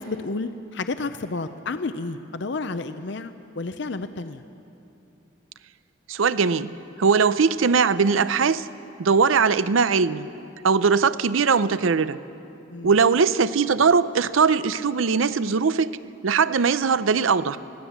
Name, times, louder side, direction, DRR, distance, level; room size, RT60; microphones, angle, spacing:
voice 1, 0.0-4.4 12.7-12.9, left 3 dB, 60° left, 10 dB, 0.6 m, -31 dB
voice 2, 6.1-6.7 7.0-8.7 9.0-10.3 10.6-12.2 12.8-16.0 16.2-17.6, right 5 dB, 85° right, 15 dB, 0.6 m, -20 dB
25.5 x 16.5 x 7.2 m, 2.7 s
head